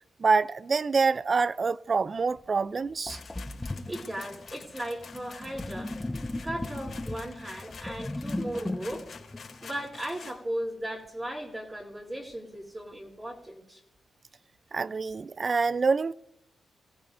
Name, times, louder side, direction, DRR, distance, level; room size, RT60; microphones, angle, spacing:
voice 1, 0.2-3.2 14.7-16.1, right 4 dB, 45° right, 0.5 m, -26 dB
Sink (filling or washing), 2.4-2.5 3.1-10.4, left 1 dB, 15° left, 0.9 m, -37 dB
sound 1, 3.1-10.4, left 6 dB, 55° left, 4.1 m, -48 dB
voice 2, 3.9-5.9 6.4-9.1 9.6-13.8, right 1 dB, 20° right, 3.4 m, -37 dB
25.5 x 15.5 x 2.7 m
cardioid pair, 75°, 0 cm